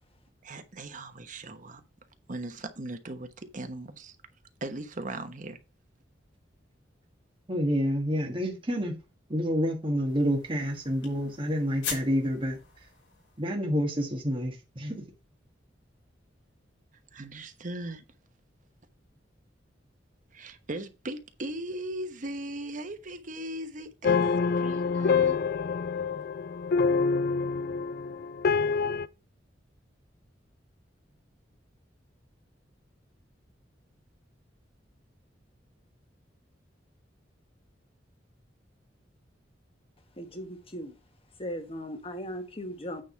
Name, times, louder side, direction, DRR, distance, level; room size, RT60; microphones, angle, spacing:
voice 1, 0.4-1.8 2.3-4.2 4.6-5.6 17.1-18.0 20.3-24.3 24.6-25.4, right 1 dB, 45° right, 1.1 m, -38 dB
voice 2, 7.5-9.0 9.3-12.6 13.4-15.0, equal, 30° right, 1.6 m, -28 dB
sound 1, 10.1-13.6, left 6 dB, 90° left, 3.4 m, -42 dB
sound 2, 24.0-29.1, left 5 dB, 55° left, 0.4 m, -26 dB
voice 3, 40.2-40.9 41.4-43.0, equal, 30° left, 1.6 m, -37 dB
9.0 x 3.6 x 5.7 m
head